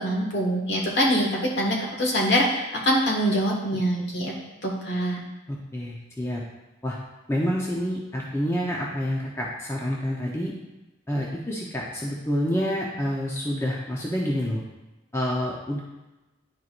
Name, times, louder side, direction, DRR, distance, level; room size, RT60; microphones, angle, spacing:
voice 1, 0.0-4.3 4.6-5.2, equal, 60° left, -3 dB, 1.8 m, -24 dB
voice 2, 5.5-6.4 6.8-7.0 7.3-10.5 11.1-14.6 15.1-15.8, equal, 15° left, -4 dB, 0.7 m, -28 dB
11.0 x 4.6 x 2.5 m, 1.1 s
head